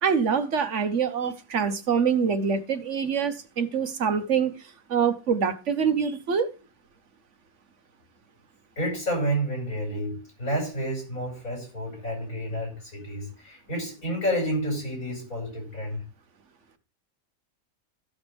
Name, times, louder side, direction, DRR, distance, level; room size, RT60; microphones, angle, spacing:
voice 1, 0.0-4.5 4.9-6.5, right 6 dB, 60° right, 1.3 m, -25 dB
voice 2, 8.8-16.0, equal, 80° left, 6.5 m, -30 dB
14.5 x 6.4 x 3.5 m
omnidirectional pair, 1.4 m